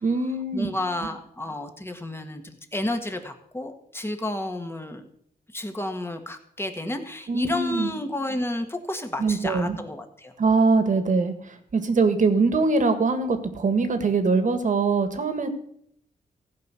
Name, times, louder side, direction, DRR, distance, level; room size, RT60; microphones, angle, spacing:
voice 1, 0.0-0.7 7.3-7.9 9.2-9.8 10.4-15.5, right 4 dB, 55° right, 9 dB, 1.7 m, -22 dB
voice 2, 0.5-5.1 5.5-10.3, left 1 dB, 15° left, 6 dB, 1.7 m, -31 dB
15.5 x 5.3 x 8.3 m, 0.70 s
cardioid pair, 90°, 16 cm